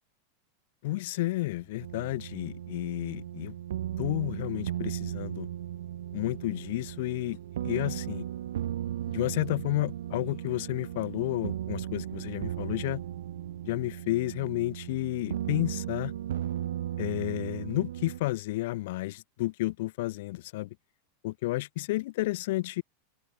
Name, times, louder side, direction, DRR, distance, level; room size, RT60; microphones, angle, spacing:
voice 1, 0.8-3.5 4.0-5.5 6.1-8.3 9.1-13.0 13.6-16.1 17.0-20.8 21.2-22.8, left 18 dB, 70° left, 0.4 m, -31 dB
sound 1, 1.2-15.1, right 30 dB, 60° right, 5.9 m, -55 dB
sound 2, 1.8-18.2, right 11 dB, 85° right, 0.6 m, -36 dB
Speech synthesizer, 8.5-12.0, left 5 dB, 20° left, 6.9 m, -69 dB
open air
hypercardioid pair, 120°, 0 cm